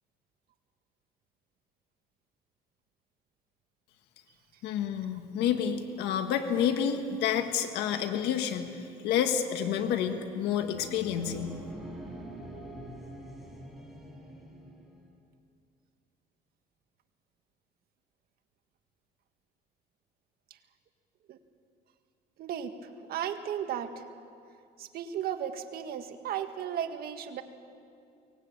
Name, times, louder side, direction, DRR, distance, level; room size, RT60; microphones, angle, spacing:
voice 1, 4.6-8.7 9.0-11.6, left 8 dB, 85° left, 6 dB, 1.7 m, -29 dB
sound 1, 10.4-15.1, right 1 dB, ahead, 4.6 m, -45 dB
voice 2, 22.4-22.7 23.1-24.1 24.8-27.4, right 9 dB, 65° right, 7 dB, 1.8 m, -35 dB
23.5 x 18.5 x 8.8 m, 2.5 s
cardioid pair, 110°, 17 cm